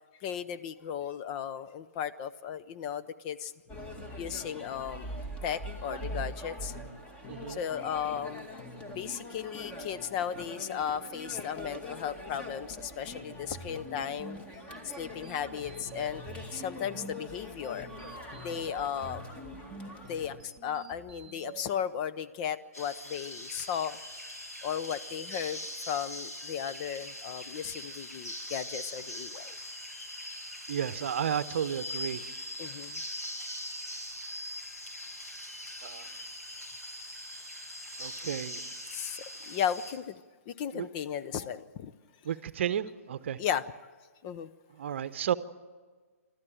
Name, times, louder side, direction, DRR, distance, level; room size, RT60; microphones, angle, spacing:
voice 1, 0.2-3.5 4.1-5.1 5.4-6.8 7.5-8.5 8.9-14.4 15.0-16.2 16.5-17.9 18.4-19.2 20.1-24.0 24.6-29.6 32.6-33.0 38.9-41.9 43.4-43.6 44.2-44.5, left 8 dB, 30° left, 12 dB, 0.7 m, -35 dB
sound 1, 3.7-20.4, equal, 15° left, 2.2 m, -43 dB
voice 2, 7.3-7.6 30.7-32.2 35.8-36.1 38.0-38.7 40.7-40.9 42.2-43.4 44.8-45.3, right 9 dB, 50° right, 15 dB, 0.8 m, -32 dB
sound 2, 13.3-21.6, right 3 dB, 10° right, 1.9 m, -48 dB
sound 3, 22.7-39.9, left 1 dB, 85° left, 5.4 m, -41 dB
26.0 x 13.5 x 9.1 m, 1.4 s
figure-of-eight pair, 125°, 8 cm